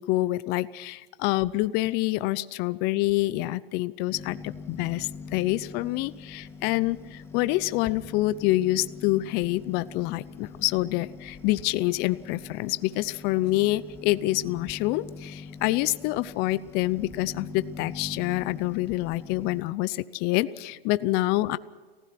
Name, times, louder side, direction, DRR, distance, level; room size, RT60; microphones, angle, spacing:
voice 1, 0.0-21.6, left 17 dB, 35° left, 16 dB, 0.7 m, -27 dB
sound 1, 4.1-19.6, left 4 dB, 10° left, 2.1 m, -43 dB
29.5 x 15.5 x 6.0 m, 1.4 s
hypercardioid pair, 130°, 29 cm